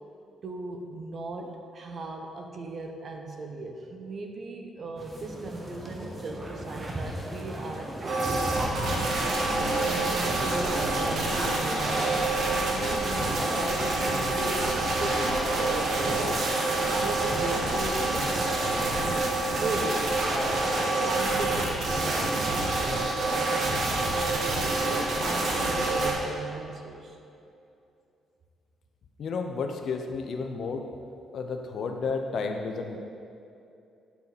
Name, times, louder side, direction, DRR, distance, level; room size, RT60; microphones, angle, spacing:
voice 1, 0.4-9.0 9.8-16.4 16.9-18.3 18.9-20.1 20.3-27.2, right 3 dB, 50° right, 3 dB, 0.9 m, -38 dB
sound 1, 5.0-10.4, right 1 dB, 25° right, 1.4 m, -37 dB
sound 2, 8.1-26.1, right 2 dB, 65° right, 1.6 m, -27 dB
voice 2, 29.2-30.9 31.3-33.0, left 4 dB, 60° left, 4 dB, 0.7 m, -32 dB
9.3 x 7.0 x 4.0 m, 2.6 s
cardioid pair, 90°, 0 cm